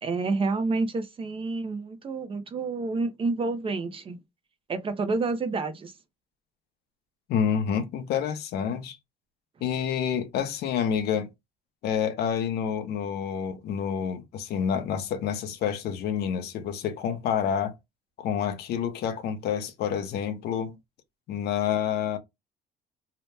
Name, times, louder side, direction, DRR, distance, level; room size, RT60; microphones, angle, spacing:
voice 1, 0.0-4.2 4.7-5.9, right 3 dB, 30° right, 0.6 m, -29 dB
voice 2, 7.3-9.0 9.6-11.3 11.8-17.8 18.2-20.8 21.3-22.2, left 8 dB, 75° left, 0.7 m, -28 dB
2.8 x 2.1 x 3.2 m
cardioid pair, 110°, 17 cm